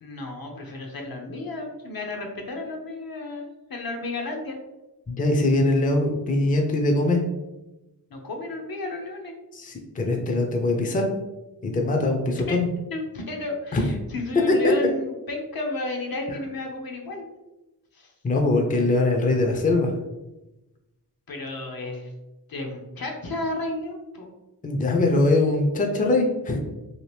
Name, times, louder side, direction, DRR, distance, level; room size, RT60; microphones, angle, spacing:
voice 1, 0.0-4.6 8.1-9.3 12.5-12.6 12.9-17.3 17.9-18.1 21.3-22.1 22.5-24.3, left 2 dB, 55° left, 2 dB, 0.7 m, -32 dB
voice 2, 5.1-7.2 9.5-11.1 11.6-12.7 13.7-13.9 14.5-14.7 18.2-19.9 24.6-26.6, left 2 dB, 20° left, 2 dB, 0.5 m, -22 dB
2.8 x 2.5 x 3.2 m, 1.0 s
cardioid pair, 55°, 42 cm